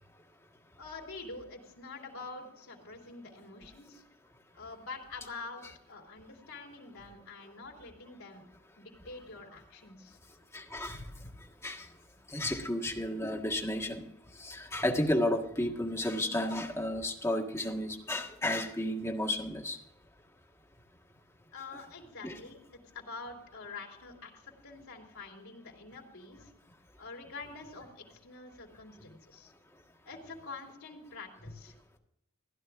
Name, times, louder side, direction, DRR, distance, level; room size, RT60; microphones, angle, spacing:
voice 1, 0.8-4.0 4.5-8.4 8.8-10.2 21.5-26.5 27.0-29.5 30.0-31.7, left 3 dB, 70° left, 0 dB, 3.6 m, -46 dB
voice 2, 10.5-11.3 11.6-11.9 12.3-14.0 14.4-19.8 22.2-22.4, left 1 dB, 15° left, 1 dB, 1.7 m, -32 dB
16.0 x 11.0 x 3.7 m, 0.80 s
head